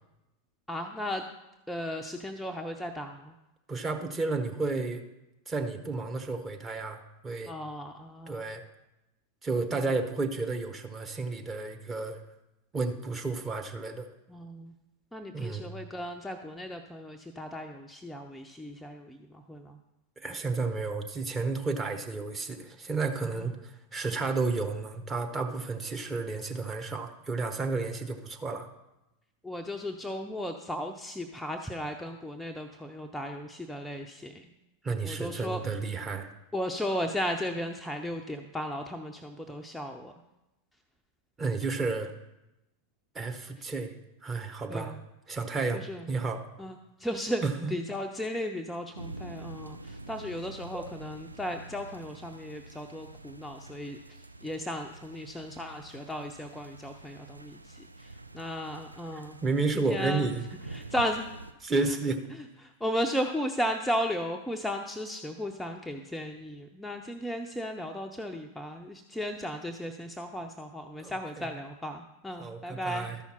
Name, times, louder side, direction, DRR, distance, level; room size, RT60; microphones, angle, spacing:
voice 1, 0.7-1.2 1.7-3.3 7.5-8.5 14.3-14.7 15.1-19.8 23.3-23.5 29.4-34.5 35.0-35.6 36.5-40.1 44.7-45.0 45.7-46.1 46.6-47.4 47.7-54.0 54.4-59.4 59.7-60.3 60.7-61.3 61.9-62.0 62.3-73.1, equal, 5° left, 3 dB, 0.6 m, -35 dB
voice 2, 3.7-5.0 5.5-7.5 8.3-8.6 9.4-12.2 12.7-14.1 15.3-15.7 20.2-28.7 34.8-36.3 41.4-42.1 43.1-43.9 44.2-44.9 45.3-46.4 47.4-47.7 50.7-50.8 59.4-60.4 61.6-62.3 71.0-71.1 72.4-73.2, right 3 dB, 20° right, 3 dB, 1.1 m, -32 dB
sound 1, 48.9-61.5, right 2 dB, 85° right, 0.5 m, -46 dB
13.0 x 5.7 x 4.4 m, 0.96 s
figure-of-eight pair, 90°, 0 cm